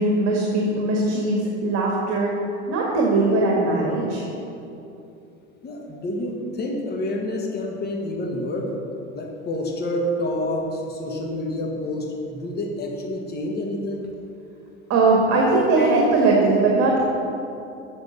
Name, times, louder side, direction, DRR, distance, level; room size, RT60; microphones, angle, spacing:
voice 1, 0.0-2.3 2.7-4.2 14.9-17.0, right 2 dB, 45° right, -2 dB, 1.8 m, -20 dB
voice 2, 5.6-8.7 9.1-14.1 15.8-15.9, left 1 dB, 25° left, 0 dB, 1.5 m, -28 dB
8.0 x 6.0 x 6.8 m, 2.7 s
hypercardioid pair, 90°, 36 cm